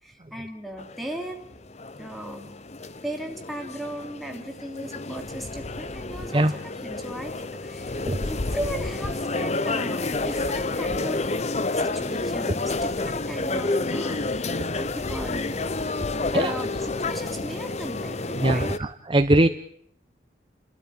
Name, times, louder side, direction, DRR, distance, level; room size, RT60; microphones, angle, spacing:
voice 1, 0.0-1.4 2.0-2.5 3.0-11.3 11.7-15.8 16.1-18.9, right 1 dB, ahead, 4 dB, 2.9 m, -37 dB
sound 1, 0.8-18.8, left 2 dB, 35° left, 0.8 m, -29 dB
voice 2, 18.4-19.5, right 1 dB, 30° right, 8 dB, 0.8 m, -21 dB
29.5 x 13.0 x 8.6 m, 0.66 s
head